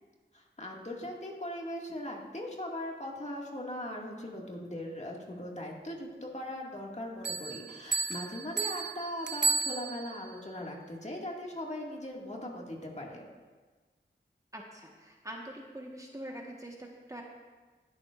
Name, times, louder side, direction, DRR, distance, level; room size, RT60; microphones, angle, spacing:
voice 1, 0.3-13.3, left 1 dB, 35° left, -1 dB, 2.0 m, -39 dB
sound 1, 7.2-10.3, right 4 dB, 65° right, 0.7 m, -33 dB
voice 2, 14.5-17.2, right 1 dB, 15° right, 0 dB, 1.3 m, -44 dB
20.0 x 7.2 x 2.5 m, 1.4 s
cardioid pair, 45°, 19 cm